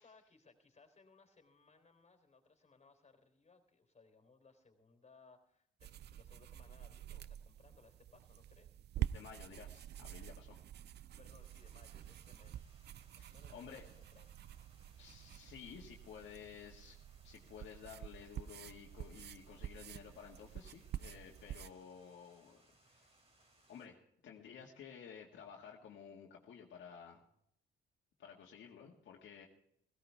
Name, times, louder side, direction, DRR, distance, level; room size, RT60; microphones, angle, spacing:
voice 1, 0.0-8.8 11.2-12.7 13.1-14.4, left 4 dB, 30° left, 5 dB, 3.7 m, -65 dB
Sketch Sound, 5.8-21.7, right 11 dB, 55° right, 0.5 m, -47 dB
voice 2, 9.0-10.6 13.1-13.9 15.0-17.0 17.2-22.6 22.8-23.1 23.7-24.0 24.2-27.2 28.2-29.5, left 7 dB, 70° left, -1 dB, 1.9 m, -53 dB
sound 1, 11.4-23.9, right 2 dB, 30° right, 3.3 m, -70 dB
17.0 x 16.5 x 3.5 m, 0.72 s
cardioid pair, 90°, 20 cm